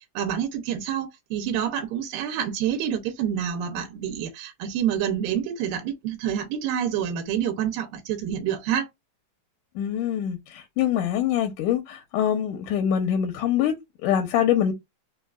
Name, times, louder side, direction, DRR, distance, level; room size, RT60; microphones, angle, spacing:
voice 1, 0.2-8.9, right 9 dB, 85° right, 2.4 m, -27 dB
voice 2, 9.8-14.7, left 9 dB, 80° left, 2.0 m, -24 dB
5.4 x 2.3 x 2.4 m
omnidirectional pair, 4.0 m